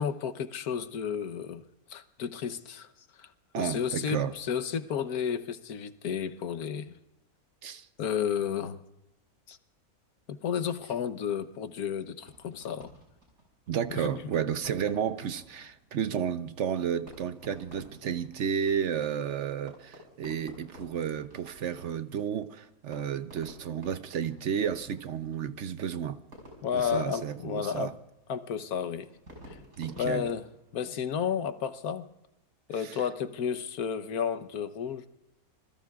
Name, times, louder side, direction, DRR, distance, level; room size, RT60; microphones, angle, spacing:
voice 1, 0.0-1.6 1.9-2.9 3.2-3.3 3.6-7.0 8.0-8.8 9.5-9.6 10.3-12.9 13.9-14.1 26.6-27.9 28.3-29.1 29.5-29.6 30.0-30.5 30.7-32.1 32.7-35.1, left 7 dB, 90° left, 1.4 m, -32 dB
voice 2, 3.5-4.3 7.6-7.9 13.7-26.2 26.7-27.9 29.8-30.3 32.8-33.0, right 8 dB, 60° right, 0.9 m, -32 dB
Fireworks, 12.2-31.0, equal, 80° right, 6.2 m, -54 dB
27.0 x 21.0 x 2.4 m
omnidirectional pair, 1.5 m